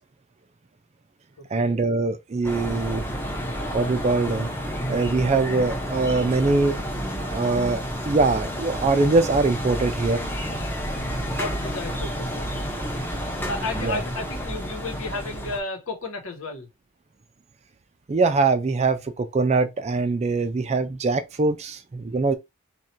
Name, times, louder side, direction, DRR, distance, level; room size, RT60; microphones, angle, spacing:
voice 1, 1.5-3.0 3.7-4.5 4.9-6.8 7.3-10.2 13.8-14.0 18.1-22.4, right 3 dB, 30° right, 0.3 m, -22 dB
sound 1, 2.4-15.6, equal, 10° left, 0.6 m, -30 dB
voice 2, 11.4-12.6 13.5-16.7, left 3 dB, 60° left, 1.1 m, -33 dB
3.0 x 2.5 x 4.3 m
head